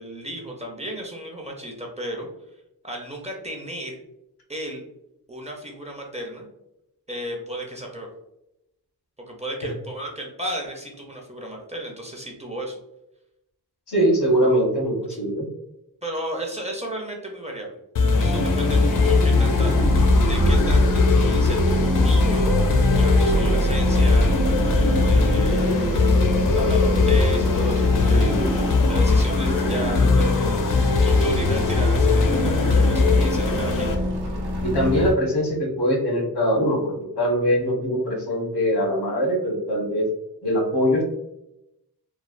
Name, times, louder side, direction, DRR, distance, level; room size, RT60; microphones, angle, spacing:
voice 1, 0.0-2.3 2.8-4.0 4.5-4.8 5.3-6.5 7.1-8.1 9.3-12.8 16.0-17.8 18.2-24.3 24.7-26.1 26.5-28.6 28.9-30.6 31.0-33.9, right 1 dB, 20° right, 0 dB, 0.5 m, -34 dB
voice 2, 13.9-15.5 28.1-28.5 34.6-40.1 40.4-41.0, equal, 85° left, -1 dB, 1.1 m, -22 dB
sound 1, 18.0-34.0, left 3 dB, 55° left, 0.5 m, -20 dB
sound 2, 18.1-35.1, right 1 dB, 80° right, 0.8 m, -26 dB
3.2 x 2.2 x 2.4 m, 0.86 s
wide cardioid pair, 135°, 38 cm